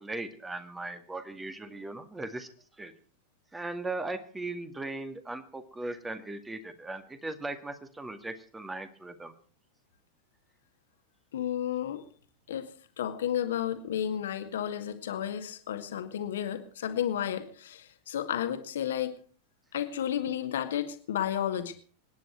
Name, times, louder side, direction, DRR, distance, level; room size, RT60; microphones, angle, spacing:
voice 1, 0.0-2.5 2.8-2.9 3.5-9.3, right 2 dB, 10° right, 10 dB, 2.0 m, -38 dB
voice 2, 11.3-12.0 12.5-19.2 19.7-21.8, left 10 dB, 60° left, 8 dB, 2.0 m, -32 dB
25.5 x 10.5 x 4.5 m, 0.43 s
figure-of-eight pair, 90°, 0 cm